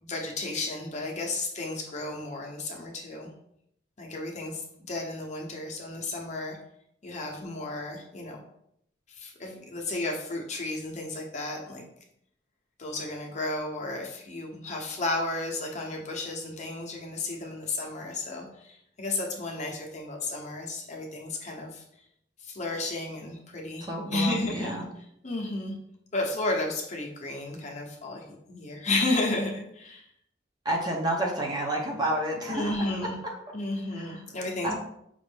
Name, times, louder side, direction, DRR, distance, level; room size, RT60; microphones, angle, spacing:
voice 1, 0.0-3.3 4.0-4.6 4.9-6.6 7.0-8.4 9.2-11.8 12.8-21.8 22.5-24.8 25.2-25.7 26.1-30.0 32.5-33.1 33.5-34.7, left 2 dB, 40° left, 0 dB, 0.7 m, -33 dB
voice 2, 23.8-24.9 30.6-33.4 33.9-34.2 34.6-34.7, right 1 dB, 20° right, -1 dB, 0.7 m, -30 dB
5.1 x 2.5 x 3.4 m, 0.74 s
head